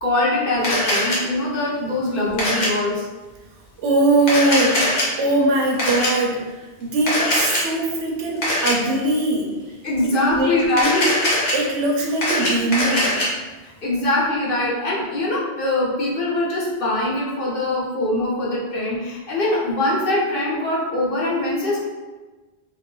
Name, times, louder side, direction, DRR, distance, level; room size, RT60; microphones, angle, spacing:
voice 1, 0.0-3.1 9.8-11.0 13.6-21.8, left 1 dB, 55° left, -6 dB, 1.0 m, -22 dB
Camera, 0.6-1.2 2.4-2.7 4.2-5.0 5.8-6.1 7.1-7.6 8.4-8.7 10.7-11.5 12.0-13.3, left 1 dB, 90° left, 1.3 m, -21 dB
voice 2, 3.8-4.8 5.2-9.6 10.2-11.0 11.5-13.1, right 2 dB, 90° right, -1 dB, 1.0 m, -21 dB
2.8 x 2.5 x 3.5 m, 1.2 s
omnidirectional pair, 1.1 m